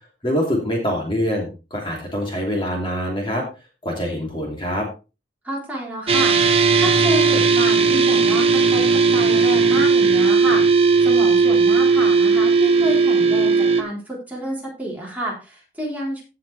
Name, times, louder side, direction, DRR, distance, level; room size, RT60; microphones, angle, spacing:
voice 1, 0.2-3.4 3.8-4.9, equal, 30° left, -1 dB, 2.8 m, -24 dB
voice 2, 5.4-6.4 6.8-16.2, equal, 10° right, -4 dB, 3.7 m, -29 dB
sound 1, 6.1-13.8, right 4 dB, 35° right, 1.2 m, -16 dB
16.0 x 5.8 x 3.3 m, 0.31 s
head